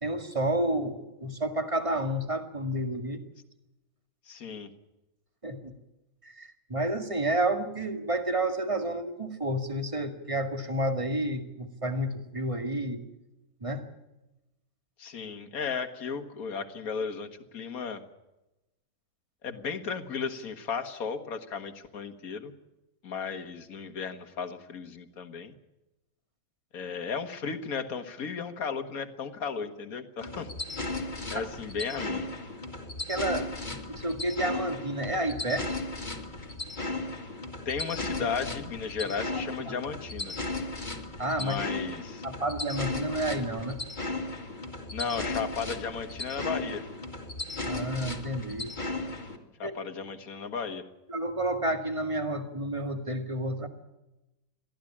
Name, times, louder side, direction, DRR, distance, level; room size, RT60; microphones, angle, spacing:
voice 1, 0.0-3.2 5.4-5.7 6.2-13.0 13.6-13.8 31.3-31.4 33.1-33.5 33.9-35.8 39.7-39.8 41.2-41.6 42.2-43.8 47.6-48.7 49.6-49.7 51.1-53.7, right 1 dB, 15° right, 6 dB, 1.9 m, -30 dB
voice 2, 4.3-4.7 15.0-18.0 19.4-22.5 23.0-25.5 26.7-30.5 31.3-32.3 37.7-40.3 41.4-42.2 44.9-46.8 49.6-50.9, left 5 dB, 45° left, 9 dB, 2.0 m, -35 dB
sound 1, 30.2-49.4, left 2 dB, 20° left, 2.3 m, -36 dB
22.5 x 15.0 x 8.7 m, 0.97 s
omnidirectional pair, 2.2 m